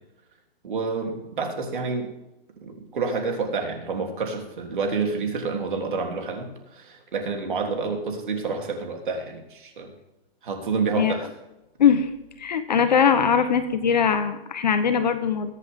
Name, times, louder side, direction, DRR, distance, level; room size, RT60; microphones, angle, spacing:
voice 1, 0.6-2.1 2.6-9.9 10.4-11.3, right 4 dB, 55° right, 3 dB, 3.4 m, -28 dB
voice 2, 11.8-12.1 12.4-15.5, left 7 dB, 45° left, 9 dB, 1.1 m, -21 dB
22.0 x 8.3 x 3.7 m, 0.94 s
hypercardioid pair, 180°, 30 cm